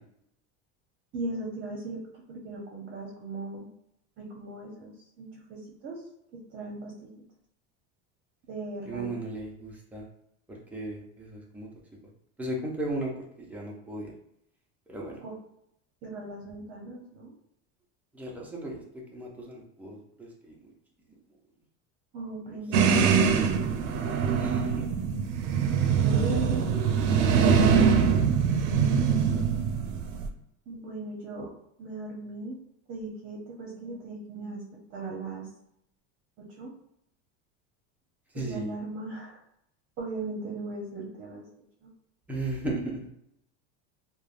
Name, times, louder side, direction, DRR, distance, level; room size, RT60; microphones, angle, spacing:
voice 1, 1.1-3.7 4.2-6.0 6.3-7.1 8.5-9.1 15.2-15.3 16.0-17.3 22.1-23.2 26.0-26.7 30.7-31.5 31.8-32.6 32.9-35.5 36.4-36.7 38.3-39.4 40.0-41.4 41.8-41.9, right 2 dB, 35° right, -2 dB, 0.6 m, -38 dB
voice 2, 8.9-10.0 10.5-11.7 12.4-13.1 13.4-14.1 14.9-15.2 18.1-20.7 22.5-22.6 24.4-24.8 26.5-26.9 27.5-28.3 28.6-29.2 38.3-38.8 42.3-43.1, right 1 dB, 5° right, -3 dB, 0.3 m, -36 dB
sound 1, 22.7-30.3, right 6 dB, 80° right, 0.5 m, -23 dB
3.2 x 2.1 x 2.4 m, 0.75 s
supercardioid pair, 140°, 37 cm